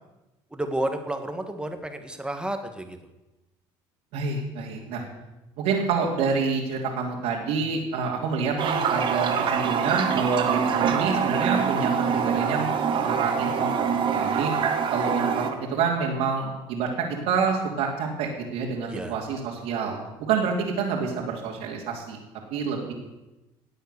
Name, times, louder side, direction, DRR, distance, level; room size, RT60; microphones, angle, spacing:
voice 1, 0.5-3.0 18.9-19.2, right 1 dB, 10° right, 7 dB, 1.7 m, -31 dB
voice 2, 4.1-5.0 5.6-13.7 14.1-14.5 14.9-22.2 22.5-22.9, right 5 dB, 80° right, -3 dB, 2.9 m, -27 dB
Toilet flush, 8.6-15.5, right 6 dB, 50° right, 2.1 m, -25 dB
18.5 x 8.0 x 6.9 m, 1.0 s
cardioid pair, 105°, 11 cm